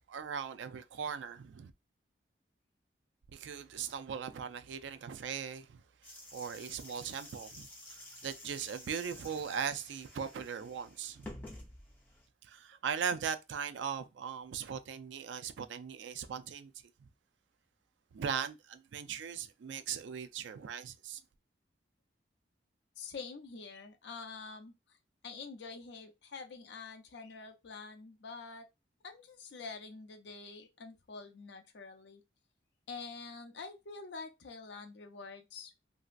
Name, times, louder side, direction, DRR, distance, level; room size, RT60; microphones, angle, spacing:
voice 1, 0.1-1.7 3.3-5.8 6.3-11.3 12.4-16.7 18.1-21.2, right 7 dB, 80° right, 0.4 m, -39 dB
sound 1, 6.0-12.3, left 1 dB, 10° left, 0.6 m, -51 dB
voice 2, 23.0-24.7 25.2-28.7 29.0-32.2 32.9-35.7, left 4 dB, 70° left, 0.5 m, -46 dB
3.0 x 2.6 x 2.4 m
head